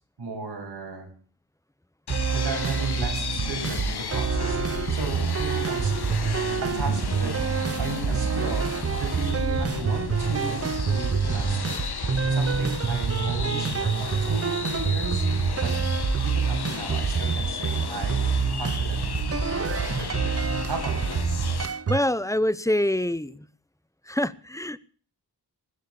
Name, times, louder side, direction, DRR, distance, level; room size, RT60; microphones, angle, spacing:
voice 1, 0.2-1.1 2.3-5.9 6.6-7.3 7.6-11.8 12.3-15.3 15.6-15.7 16.2-19.5 19.9-20.3 20.7-21.2, right 3 dB, 85° right, 0 dB, 7.4 m, -35 dB
sound 1, 2.1-21.7, left 6 dB, 75° left, 1.2 m, -33 dB
sound 2, 2.1-22.0, right 6 dB, 40° right, 0.6 m, -27 dB
voice 2, 21.9-23.5 24.1-24.8, left 1 dB, 10° left, 17 dB, 0.8 m, -25 dB
20.5 x 8.0 x 7.0 m, 0.43 s
wide cardioid pair, 60°, 39 cm